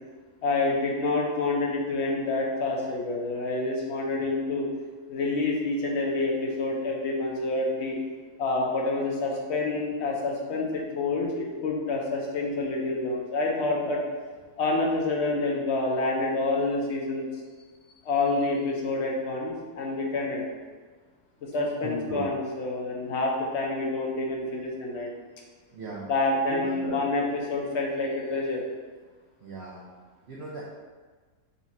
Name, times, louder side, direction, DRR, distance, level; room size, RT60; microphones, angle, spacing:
voice 1, 0.4-4.7 5.1-8.0 8.4-14.0 14.6-17.3 18.0-20.4 21.5-25.1 26.1-28.6, left 2 dB, 55° left, -1 dB, 0.8 m, -28 dB
voice 2, 21.8-22.3 25.7-26.1 26.5-27.0 29.4-29.8 30.3-30.6, right 2 dB, 75° right, -4 dB, 0.6 m, -37 dB
3.9 x 2.4 x 4.1 m, 1.4 s
omnidirectional pair, 1.7 m